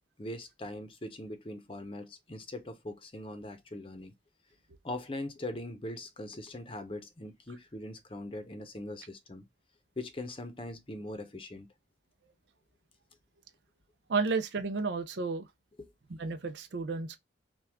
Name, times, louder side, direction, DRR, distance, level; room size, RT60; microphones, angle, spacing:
voice 1, 0.2-4.1 4.8-9.4 10.0-11.7 15.8-15.9, left 1 dB, 30° left, 0.7 m, -41 dB
voice 2, 14.1-15.5 16.2-17.2, right 4 dB, 75° right, 0.5 m, -32 dB
5.8 x 2.3 x 3.5 m
head